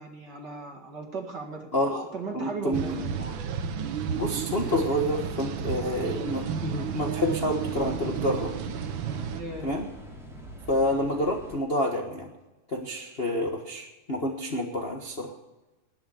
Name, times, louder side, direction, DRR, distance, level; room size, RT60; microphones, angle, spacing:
voice 1, 0.0-1.7 2.1-3.1 9.3-9.7, right 4 dB, 40° right, 2 dB, 2.2 m, -36 dB
voice 2, 1.7-2.1 2.3-3.3 4.1-8.5 9.6-9.8 10.7-12.3 12.7-15.3, left 1 dB, 35° left, 1 dB, 0.9 m, -28 dB
sound 1, 2.7-9.4, right 7 dB, 65° right, 1.2 m, -32 dB
Drum, 4.7-6.7, left 3 dB, 20° left, 2.2 m, -50 dB
sound 2, 5.9-11.6, right 1 dB, ahead, 3.4 m, -45 dB
20.0 x 7.0 x 8.2 m, 1.1 s
omnidirectional pair, 3.3 m